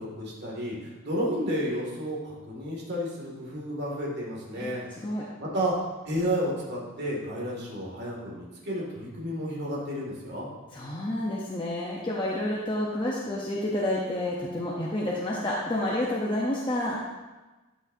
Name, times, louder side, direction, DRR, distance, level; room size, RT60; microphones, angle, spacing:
voice 1, 0.0-4.8 5.4-5.7 6.0-10.5, equal, 50° right, -4 dB, 2.3 m, -31 dB
voice 2, 4.6-5.2 10.7-17.0, left 1 dB, 25° left, -5 dB, 0.8 m, -29 dB
12.0 x 6.1 x 2.7 m, 1.2 s
head